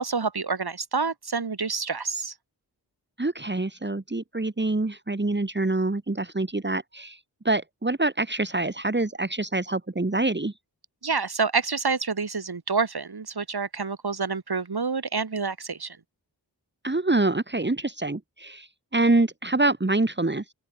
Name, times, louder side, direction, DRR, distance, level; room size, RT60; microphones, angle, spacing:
voice 1, 0.0-2.3 11.0-16.0, right 4 dB, 70° right, 6.3 m, -28 dB
voice 2, 3.2-7.2 7.4-10.5 16.8-20.4, right 2 dB, 25° right, 3.3 m, -25 dB
open air
wide cardioid pair, 75°, 40 cm